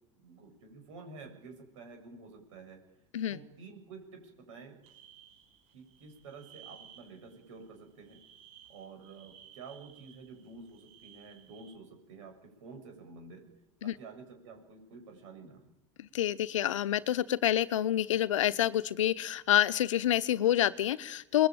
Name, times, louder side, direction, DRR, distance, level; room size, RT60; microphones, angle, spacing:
voice 1, 0.2-2.8 3.3-4.8 5.7-8.2 8.7-13.4 13.8-15.7, right 4 dB, 80° right, 4 dB, 7.1 m, -50 dB
sound 1, 4.8-11.7, right 9 dB, 55° right, 5.1 m, -57 dB
voice 2, 16.0-21.5, left 12 dB, 90° left, 16 dB, 0.9 m, -28 dB
26.0 x 20.5 x 9.1 m, 0.92 s
hypercardioid pair, 80°, 16 cm